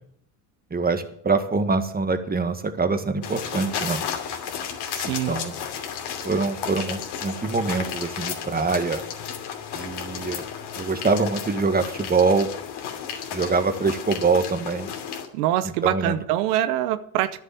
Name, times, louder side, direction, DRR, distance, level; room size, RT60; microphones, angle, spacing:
voice 1, 0.7-4.0 5.0-5.5 6.2-9.0 9.7-10.4 10.8-12.5 13.3-14.9 15.6-16.2, right 4 dB, 20° right, 1.7 m, -24 dB
sound 1, 3.2-15.3, left 8 dB, 60° left, 2.9 m, -33 dB
voice 2, 4.9-5.3 15.3-17.4, right 13 dB, 85° right, 0.9 m, -24 dB
11.0 x 7.3 x 9.3 m
supercardioid pair, 80°, 44 cm